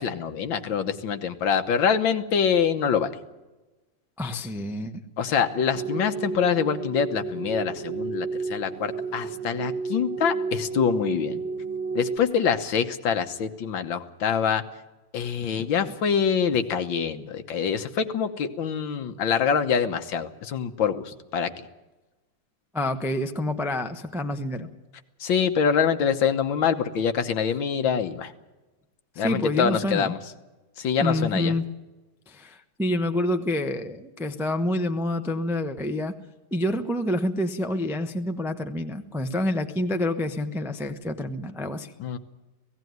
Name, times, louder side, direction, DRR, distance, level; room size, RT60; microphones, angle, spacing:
voice 1, 0.0-3.2 5.2-11.4 12.0-14.6 15.1-21.5 25.2-28.3 29.2-30.2 30.8-31.6 42.0-42.2, left 7 dB, 75° left, 8 dB, 1.9 m, -25 dB
voice 2, 4.2-4.9 15.8-15.9 22.7-24.7 29.2-30.1 31.0-31.6 32.3-36.1 36.5-41.9, left 1 dB, 5° right, 7 dB, 0.4 m, -27 dB
sound 1, 5.7-12.2, right 4 dB, 80° right, 1.6 m, -31 dB
17.0 x 16.5 x 9.4 m, 1.1 s
omnidirectional pair, 2.1 m